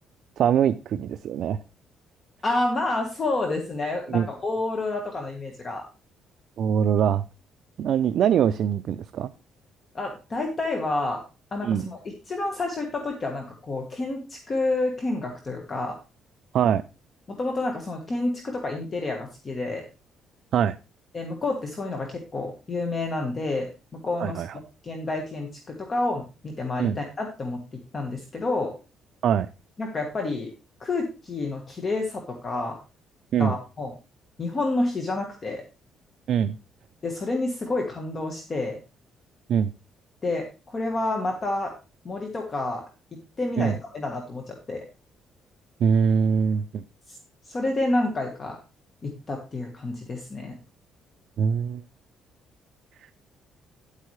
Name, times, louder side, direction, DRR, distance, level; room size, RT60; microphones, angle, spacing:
voice 1, 0.4-1.6 4.1-4.3 6.6-7.2 7.8-9.3 11.6-11.8 16.5-16.8 20.5-20.7 24.2-24.5 26.8-27.0 29.2-29.5 33.3-33.6 36.3-36.6 39.5-39.7 43.6-43.8 45.8-46.8 51.4-51.8, right 8 dB, 55° right, 11 dB, 0.4 m, -23 dB
voice 2, 2.4-5.9 9.9-11.2 11.5-12.0 12.3-16.0 17.3-19.8 21.1-24.4 24.8-28.7 29.8-30.5 30.8-32.8 33.4-33.9 34.4-35.6 37.0-38.8 40.2-41.7 42.0-42.8 43.4-44.8 47.1-47.2 47.4-48.6 49.0-50.5, left 2 dB, 30° left, 3 dB, 1.4 m, -29 dB
10.5 x 8.2 x 3.2 m, 0.31 s
cardioid pair, 155°, 0 cm